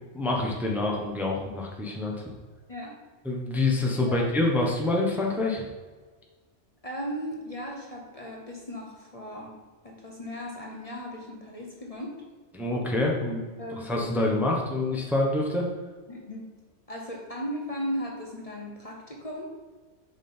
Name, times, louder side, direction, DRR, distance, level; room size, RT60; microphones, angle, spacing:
voice 1, 0.1-2.3 3.2-5.7 12.5-13.4 13.8-15.7, left 2 dB, ahead, -1 dB, 0.9 m, -26 dB
voice 2, 6.8-9.5 9.8-12.1 13.6-14.3 16.1-16.4 16.9-19.5, equal, 35° left, -1 dB, 1.0 m, -36 dB
7.0 x 5.6 x 4.4 m, 1.4 s
omnidirectional pair, 1.2 m